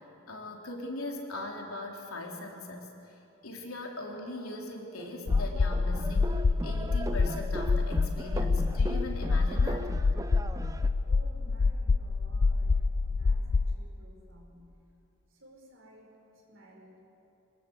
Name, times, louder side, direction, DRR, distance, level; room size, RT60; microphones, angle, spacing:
voice 1, 0.3-3.1 3.4-6.4 6.6-9.9, left 1 dB, 80° left, 0 dB, 3.4 m, -40 dB
sound 1, 5.0-10.9, right 1 dB, 15° right, 0.6 m, -39 dB
sound 2, 5.3-13.7, left 4 dB, 50° left, 0.4 m, -27 dB
voice 2, 11.1-14.8 15.3-17.0, equal, 60° right, 0 dB, 4.9 m, -56 dB
24.0 x 20.0 x 7.8 m, 2.8 s
head